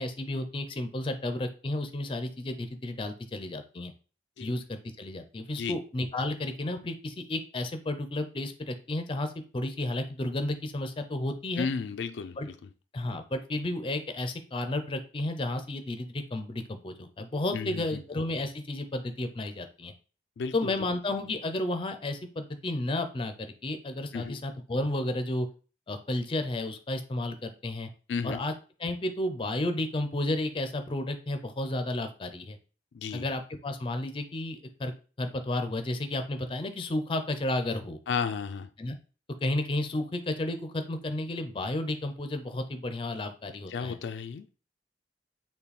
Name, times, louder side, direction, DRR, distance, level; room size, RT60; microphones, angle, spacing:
voice 1, 0.0-3.9 4.4-11.7 12.4-12.5 12.9-19.9 20.5-25.5 25.9-27.9 28.2-28.5 28.8-32.6 33.1-34.9 35.2-38.0 38.8-39.0 39.4-44.0, left 1 dB, 30° left, 8 dB, 0.5 m, -32 dB
voice 2, 11.6-12.5 17.5-18.0 20.4-20.7 24.1-24.4 28.1-28.4 32.9-33.3 38.1-38.7 43.7-44.5, left 5 dB, 85° left, 9 dB, 0.4 m, -33 dB
5.6 x 2.2 x 4.1 m, 0.37 s
head